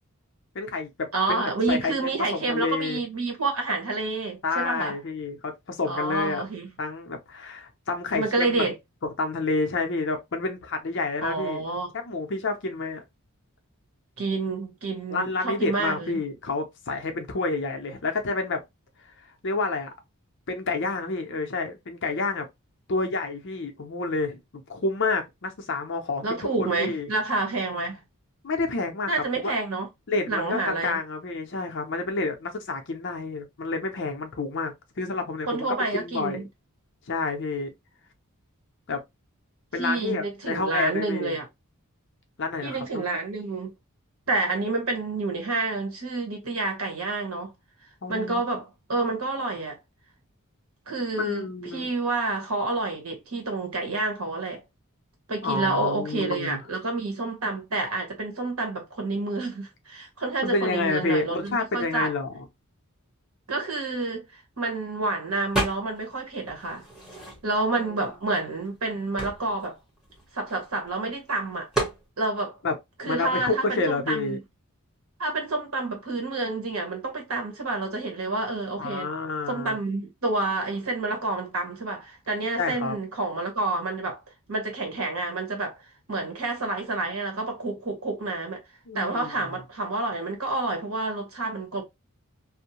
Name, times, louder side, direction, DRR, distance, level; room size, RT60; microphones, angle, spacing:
voice 1, 0.5-3.0 4.4-6.4 6.8-8.6 9.0-11.6 12.0-13.0 15.1-18.6 19.4-19.9 20.5-22.5 22.9-27.1 28.4-29.1 29.4-29.5 30.1-35.7 35.9-36.4 37.1-37.7 38.9-39.0 39.7-41.4 42.4-43.0 48.0-48.4 51.2-51.9 55.4-56.6 60.4-62.5 67.8-67.9 72.6-72.7 73.1-74.4 78.8-79.8 82.6-83.0 88.9-89.4, left 3 dB, 55° left, 0.6 m, -29 dB
voice 2, 1.1-5.0 5.8-6.7 8.1-8.7 11.2-11.9 14.2-16.2 26.2-28.0 29.1-29.9 30.3-31.0 35.5-36.5 39.8-41.4 42.6-43.7 44.3-47.5 48.1-49.8 50.9-54.6 55.3-62.1 63.5-66.8 67.4-69.8 70.3-71.7 72.2-72.6 73.0-74.4 75.2-79.1 79.5-84.2 84.5-85.8 86.1-88.6 88.9-91.8, right 3 dB, 70° right, 1.1 m, -29 dB
sound 1, 65.5-66.1 66.5-67.7 68.3-68.4 68.7-70.9 71.7-72.0, right 2 dB, 5° right, 1.0 m, -31 dB
2.6 x 2.1 x 2.9 m
head